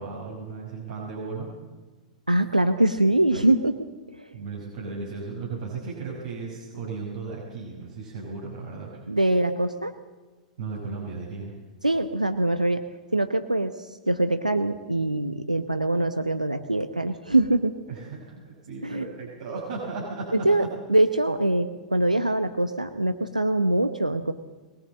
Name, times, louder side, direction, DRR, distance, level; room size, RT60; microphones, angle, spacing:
voice 1, 0.0-1.5 4.3-9.0 10.6-11.5 17.9-20.5, right 4 dB, 60° right, -3 dB, 5.7 m, -35 dB
voice 2, 2.3-3.8 4.1-4.3 9.1-9.9 11.8-12.8 13.1-17.7 18.8-19.1 20.3-20.6 20.9-24.3, right 1 dB, 90° right, 10 dB, 0.9 m, -23 dB
21.5 x 19.0 x 7.6 m, 1.3 s
figure-of-eight pair, 100°, 4 cm